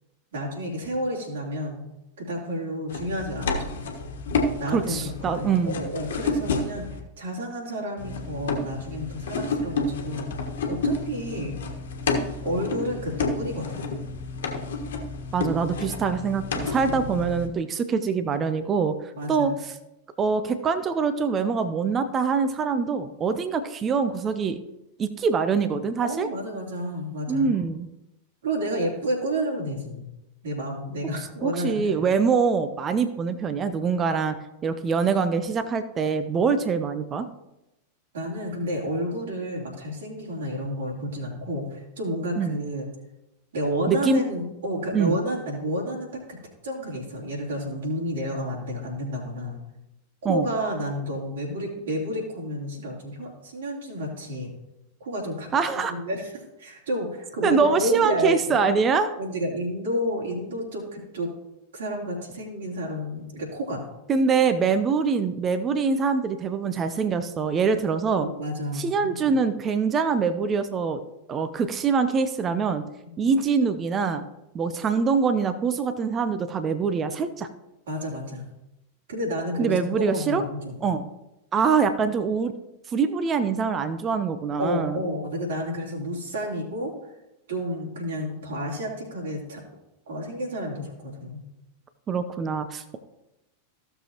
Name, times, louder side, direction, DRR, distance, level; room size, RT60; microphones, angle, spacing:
voice 1, 0.3-1.8 2.2-3.8 4.6-11.5 12.4-14.0 16.8-17.2 19.1-19.6 26.0-27.6 28.4-30.1 30.4-32.0 38.1-42.9 43.5-46.4 46.6-49.6 50.2-54.5 55.0-56.3 56.6-58.6 59.2-61.3 61.7-63.8 68.2-69.3 73.0-73.3 77.9-78.5 79.1-80.9 84.6-86.9 87.5-89.6 90.1-91.4, equal, 65° right, -3 dB, 3.2 m, -31 dB
sound 1, 2.9-7.0 8.0-17.5, left 3 dB, 60° left, 1.4 m, -30 dB
voice 2, 4.7-5.8 15.3-18.9 19.3-19.7 20.2-24.6 25.0-26.3 27.3-27.9 31.4-34.4 34.6-37.3 42.4-42.5 43.9-44.2 44.9-45.2 50.2-50.5 55.5-55.9 57.4-59.1 64.1-68.3 68.7-71.0 71.3-72.8 73.2-74.2 74.5-77.5 79.6-80.4 80.8-81.1 81.5-82.5 82.9-85.0 92.1-93.0, right 5 dB, 25° right, 11 dB, 0.6 m, -24 dB
15.5 x 6.9 x 3.0 m, 0.92 s
figure-of-eight pair, 90°, 0 cm